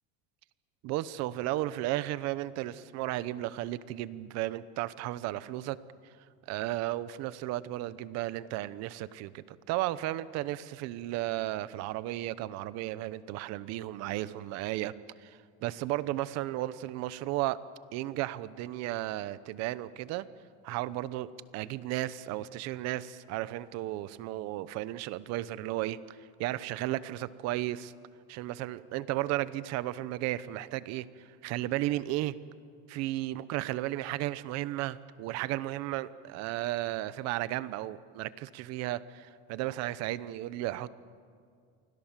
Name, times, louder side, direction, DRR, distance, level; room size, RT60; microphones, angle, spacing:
voice 1, 0.8-5.8 6.5-14.9 15.2-17.6 17.9-20.3 20.6-21.3 21.5-27.9 28.3-32.3 32.9-40.9, right 15 dB, 50° right, 16 dB, 0.9 m, -34 dB
29.0 x 24.5 x 7.4 m, 2.2 s
cardioid pair, 175°, 33 cm